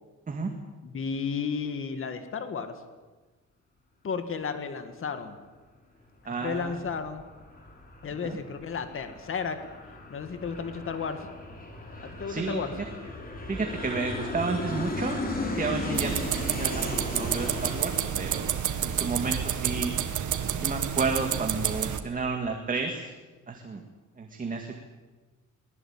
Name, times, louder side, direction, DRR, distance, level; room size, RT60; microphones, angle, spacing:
voice 1, 0.8-2.8 4.0-5.4 6.4-7.2 8.0-9.6 10.1-11.3 12.0-12.7, left 5 dB, 45° left, 8 dB, 2.1 m, -33 dB
voice 2, 6.2-6.8 8.2-8.4 12.3-12.9 13.5-15.2 15.6-18.5 18.8-19.9 20.6-23.1 23.5-23.8 24.2-24.8, right 4 dB, 30° right, 3 dB, 2.1 m, -32 dB
Aircraft, 6.4-19.6, left 2 dB, 30° left, 4.7 m, -37 dB
sound 1, 15.9-22.0, right 9 dB, 80° right, 1.9 m, -29 dB
23.5 x 19.5 x 8.9 m, 1.3 s
wide cardioid pair, 170°, 29 cm